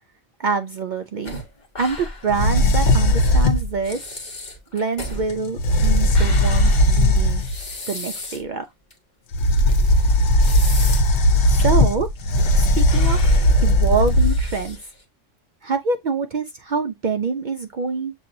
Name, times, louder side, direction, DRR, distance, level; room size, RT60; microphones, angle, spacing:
voice 1, 0.4-1.4 1.8-4.1 4.7-7.4 7.9-8.7 11.4-12.1 12.5-14.8 15.6-18.1, right 4 dB, 60° right, 0.5 m, -25 dB
sound 1, 1.2-2.4 2.7-2.8 3.5-3.6 3.8-8.5 8.9-9.0 9.7-11.2 11.6-11.7 12.1-12.6 12.9-15.0, left 1 dB, 40° left, 1.3 m, -35 dB
sound 2, 2.3-3.7 5.3-5.4 5.6-7.6 9.3-14.7, left 1 dB, 85° left, 1.1 m, -17 dB
7.0 x 2.8 x 2.5 m
omnidirectional pair, 1.3 m